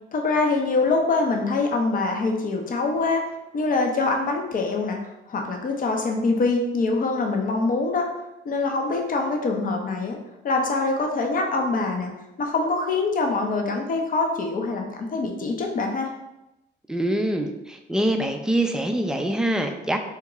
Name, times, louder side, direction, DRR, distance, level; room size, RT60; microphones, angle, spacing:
voice 1, 0.1-3.3 3.5-5.0 5.3-8.1 8.4-10.2 10.4-12.1 12.4-16.1, left 3 dB, 45° left, 2 dB, 0.6 m, -24 dB
voice 2, 16.9-20.0, right 1 dB, 5° right, 4 dB, 0.3 m, -24 dB
3.6 x 2.3 x 3.0 m, 0.94 s
cardioid pair, 90°, 20 cm